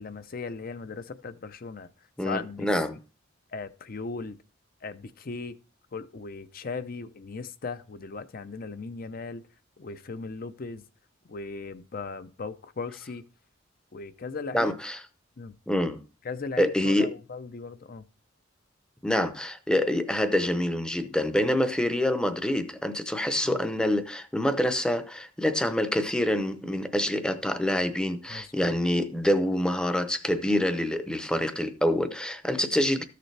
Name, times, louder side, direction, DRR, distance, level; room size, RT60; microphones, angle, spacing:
voice 1, 0.0-1.9 2.2-2.7 3.5-4.4 4.8-5.6 5.9-9.4 9.8-10.8 11.3-13.2 13.9-14.8 15.4-15.5 16.2-18.0 23.4-23.6 28.3-28.8, left 4 dB, 45° left, 0.6 m, -37 dB
voice 2, 2.2-3.0 14.5-15.0 15.7-16.0 16.6-17.1 19.0-33.0, left 1 dB, 5° left, 0.7 m, -26 dB
13.5 x 6.7 x 3.3 m
head